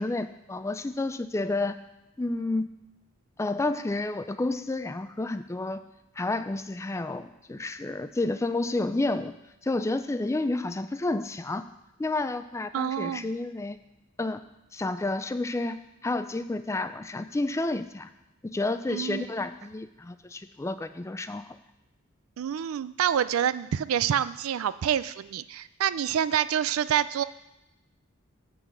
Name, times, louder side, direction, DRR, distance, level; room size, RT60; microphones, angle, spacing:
voice 1, 0.0-1.8 2.2-2.7 3.4-5.8 6.2-9.3 9.6-11.6 12.0-13.8 14.2-14.4 14.7-18.1 18.4-21.5, left 2 dB, 15° left, 11 dB, 0.3 m, -30 dB
voice 2, 12.7-13.3 18.9-19.3 22.4-27.2, right 9 dB, 85° right, 16 dB, 0.4 m, -27 dB
10.5 x 4.0 x 7.2 m, 0.93 s
head